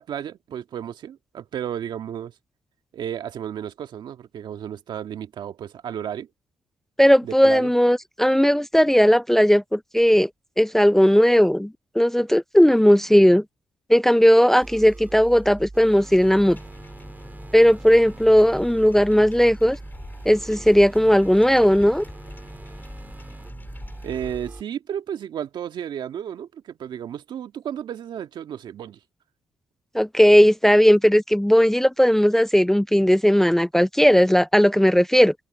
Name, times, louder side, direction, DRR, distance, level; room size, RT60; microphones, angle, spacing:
voice 1, 0.0-2.3 2.9-6.3 7.2-7.7 24.0-29.0, right 9 dB, 70° right, 1.8 m, -33 dB
voice 2, 7.0-10.3 10.6-11.7 12.0-13.4 13.9-16.6 17.5-19.8 20.3-22.0 29.9-35.3, equal, 5° left, 0.5 m, -17 dB
sound 1, 14.6-24.6, right 2 dB, 20° right, 4.1 m, -41 dB
sound 2, 16.1-24.4, left 2 dB, 25° left, 3.6 m, -44 dB
supercardioid pair, 55°, 8 cm